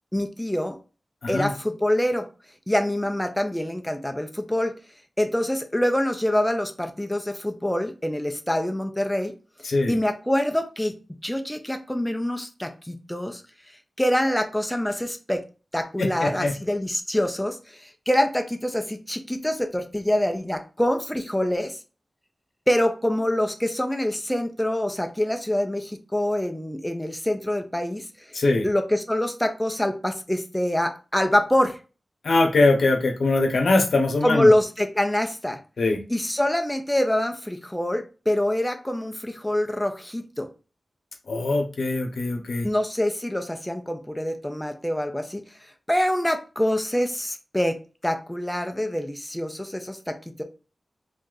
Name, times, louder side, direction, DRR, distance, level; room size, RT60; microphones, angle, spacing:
voice 1, 0.1-0.7 1.3-2.3 2.7-4.7 5.2-9.3 9.9-11.0 11.2-13.4 14.0-15.4 15.7-21.8 22.7-28.0 28.6-31.8 34.2-35.6 36.1-40.5 42.6-45.4 45.9-50.4, left 1 dB, 5° left, 5 dB, 0.4 m, -25 dB
voice 2, 9.6-10.0 16.0-16.5 28.3-28.7 32.2-34.5 35.8-36.0 41.3-42.7, left 2 dB, 90° left, 3 dB, 0.7 m, -22 dB
2.6 x 2.3 x 3.8 m, 0.33 s
wide cardioid pair, 105°, 0 cm